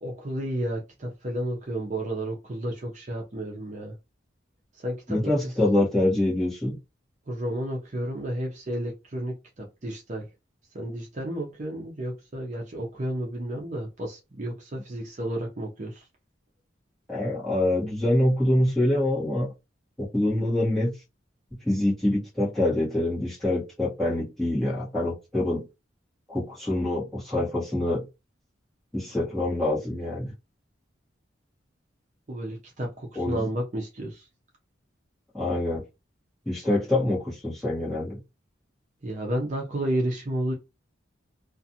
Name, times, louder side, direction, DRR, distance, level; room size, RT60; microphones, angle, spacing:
voice 1, 0.0-4.0 4.7-5.5 7.3-10.3 10.7-16.1 32.3-34.3 39.0-40.5, right 1 dB, 40° right, 0.6 m, -32 dB
voice 2, 5.1-6.8 17.1-19.5 20.0-20.9 21.6-25.6 26.3-28.0 28.9-30.3 33.1-33.5 35.3-35.8 36.4-38.2, left 1 dB, ahead, 1.1 m, -25 dB
2.4 x 2.4 x 2.7 m
head